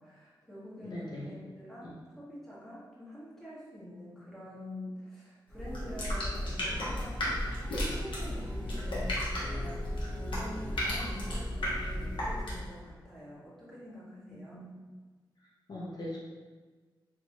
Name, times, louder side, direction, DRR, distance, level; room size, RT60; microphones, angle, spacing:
voice 1, 0.0-14.6, equal, 5° left, -9 dB, 1.5 m, -46 dB
voice 2, 0.8-1.4 1.8-2.0 14.3-14.7 15.7-16.2, left 1 dB, 60° left, -5 dB, 0.7 m, -41 dB
sound 1, 5.5-12.8, left 1 dB, 80° left, 1.2 m, -34 dB
sound 2, 6.2-11.4, equal, 20° left, 0.5 m, -50 dB
4.3 x 2.9 x 2.8 m, 1.4 s
wide cardioid pair, 115°, 8 cm